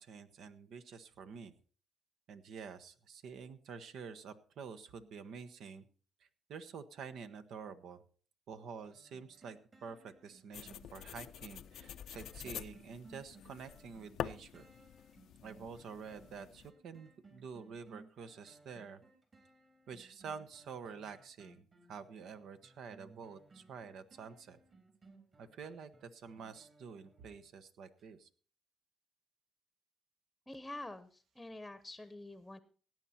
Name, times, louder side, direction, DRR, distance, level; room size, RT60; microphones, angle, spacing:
voice 1, 0.0-1.5 2.3-5.8 6.5-8.0 8.5-14.7 15.4-19.0 19.9-24.6 25.4-28.3, right 6 dB, 75° right, 10 dB, 1.2 m, -48 dB
sound 1, 8.8-27.5 28.0-28.1, right 3 dB, 40° right, 3.6 m, -62 dB
sound 2, 10.5-16.7, left 10 dB, 75° left, 0.5 m, -47 dB
voice 2, 30.5-32.6, left 2 dB, 10° left, 13 dB, 0.9 m, -47 dB
17.0 x 9.0 x 4.3 m, 0.41 s
cardioid pair, 90°, 0 cm